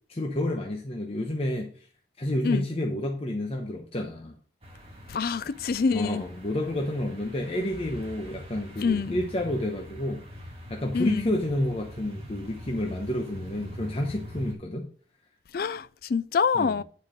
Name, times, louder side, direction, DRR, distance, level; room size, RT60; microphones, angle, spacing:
voice 1, 0.1-1.7 2.2-4.3 5.9-10.2 10.7-14.9 16.5-16.8, left 1 dB, 35° left, 1.0 m, -30 dB
sound 1, 4.6-14.5, equal, 35° right, 2.0 m, -43 dB
voice 2, 5.1-6.3 8.8-9.2 10.9-11.3 15.5-16.8, left 5 dB, 55° left, 0.4 m, -26 dB
9.6 x 4.8 x 5.1 m
head